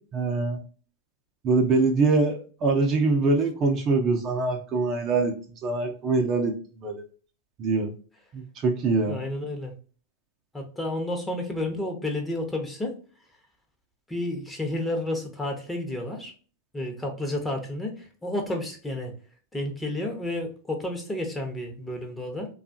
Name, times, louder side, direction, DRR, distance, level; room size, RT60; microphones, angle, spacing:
voice 1, 0.1-0.6 1.4-5.4 5.6-6.6 6.8-7.0 7.6-7.9 8.3-9.2, right 3 dB, 40° right, 3 dB, 0.6 m, -23 dB
voice 2, 9.1-9.7 10.5-12.9 14.1-16.3 16.7-17.9 18.2-19.1 19.5-22.5, left 1 dB, 10° left, 2 dB, 0.8 m, -31 dB
2.7 x 2.3 x 2.6 m, 0.39 s
hypercardioid pair, 105°, 0 cm